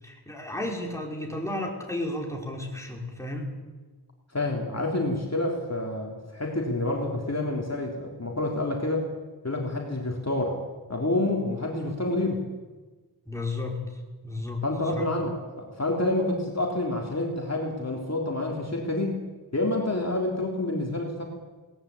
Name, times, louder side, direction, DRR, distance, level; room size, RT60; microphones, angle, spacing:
voice 1, 0.0-3.6 13.2-14.6 14.9-15.1, left 2 dB, 5° left, 0 dB, 5.1 m, -33 dB
voice 2, 4.3-9.1 9.4-10.6 10.9-12.5 14.6-19.2 19.5-21.2, left 2 dB, 40° left, 0 dB, 3.7 m, -28 dB
21.5 x 19.0 x 8.7 m, 1.3 s
wide cardioid pair, 70°, 39 cm